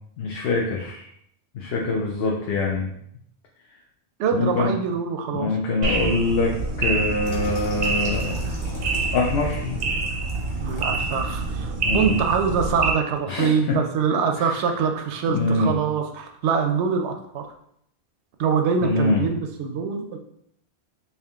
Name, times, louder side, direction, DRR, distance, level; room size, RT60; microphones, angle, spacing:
voice 1, 0.2-1.1 1.5-2.9 4.3-4.7 5.3-8.4 9.1-9.8 11.8-12.2 13.3-13.8 14.4-14.5 15.3-15.7 18.8-19.3, left 3 dB, 65° left, -1 dB, 0.8 m, -24 dB
voice 2, 4.2-5.5 10.6-17.5 18.4-20.2, right 6 dB, 80° right, 5 dB, 0.9 m, -24 dB
sound 1, 5.8-12.9, right 3 dB, 55° right, 0.7 m, -26 dB
Water tap faucet / Sink (filling or washing), 7.2-11.5 12.0-12.2, left 1 dB, 30° left, 0.9 m, -42 dB
3.6 x 2.8 x 3.4 m, 0.71 s
omnidirectional pair, 1.1 m